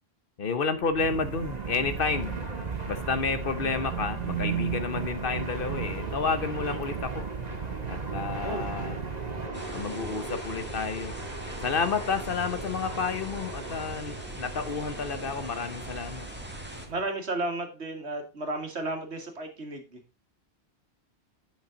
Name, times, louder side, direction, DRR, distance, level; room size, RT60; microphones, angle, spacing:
voice 1, 0.4-2.4 2.9-7.3 7.9-9.0 9.7-11.1 11.6-16.3, left 5 dB, 55° left, 1.1 m, -30 dB
Fixed-wing aircraft airplane, 0.7-17.1, right 2 dB, 40° right, 1.8 m, -38 dB
sound 1, 1.0-9.5, right 10 dB, 60° right, 0.7 m, -36 dB
sound 2, 9.5-16.9, right 1 dB, 10° right, 1.6 m, -43 dB
voice 2, 16.9-20.0, right 2 dB, 85° right, 2.2 m, -33 dB
8.1 x 7.2 x 3.9 m
omnidirectional pair, 1.1 m